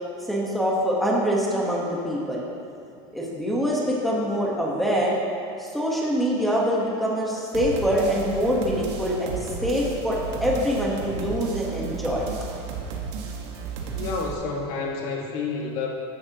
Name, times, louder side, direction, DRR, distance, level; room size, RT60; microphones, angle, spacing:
voice 1, 0.3-2.5 3.1-5.2 5.6-9.4 9.6-12.3, equal, ahead, -4 dB, 1.3 m, -24 dB
sound 1, 7.5-14.3, right 5 dB, 80° right, 1.6 m, -33 dB
voice 2, 13.9-15.9, left 4 dB, 50° left, -1 dB, 1.9 m, -29 dB
15.0 x 10.5 x 3.0 m, 2.7 s
cardioid pair, 175°, 14 cm